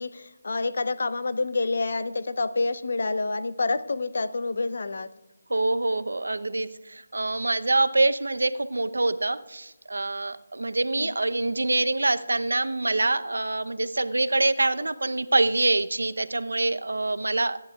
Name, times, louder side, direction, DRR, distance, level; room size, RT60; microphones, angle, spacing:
voice 1, 0.0-5.1 10.9-11.1, left 3 dB, 60° left, 13 dB, 0.7 m, -28 dB
voice 2, 5.5-17.6, right 2 dB, 85° right, 12 dB, 0.7 m, -25 dB
24.5 x 10.5 x 2.4 m, 1.0 s
figure-of-eight pair, 165°, 0 cm